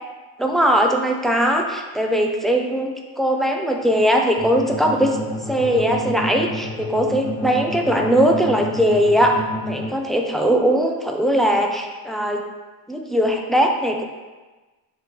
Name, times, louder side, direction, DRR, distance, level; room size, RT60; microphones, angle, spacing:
voice 1, 0.4-5.2 5.5-12.4 12.9-14.0, equal, ahead, 2 dB, 0.4 m, -20 dB
sound 1, 4.4-9.9, left 2 dB, 60° left, 1.2 m, -30 dB
5.2 x 2.7 x 3.2 m, 1.2 s
supercardioid pair, 75°, 48 cm